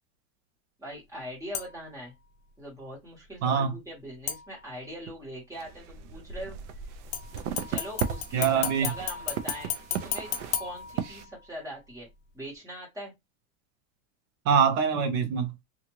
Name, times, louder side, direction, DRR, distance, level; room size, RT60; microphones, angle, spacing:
voice 1, 0.8-2.1 2.6-6.6 7.5-12.1 12.3-13.1, equal, 10° right, 1.4 m, -41 dB
sound 1, 1.5-2.0 4.3-5.0 7.1-11.5 11.9-12.0, left 9 dB, 40° left, 0.6 m, -35 dB
voice 2, 3.4-3.7 8.3-8.9 14.4-15.5, right 7 dB, 90° right, 0.9 m, -24 dB
sound 2, 5.5-11.3, right 8 dB, 60° right, 0.5 m, -37 dB
2.6 x 2.5 x 3.0 m
supercardioid pair, 160°, 40 cm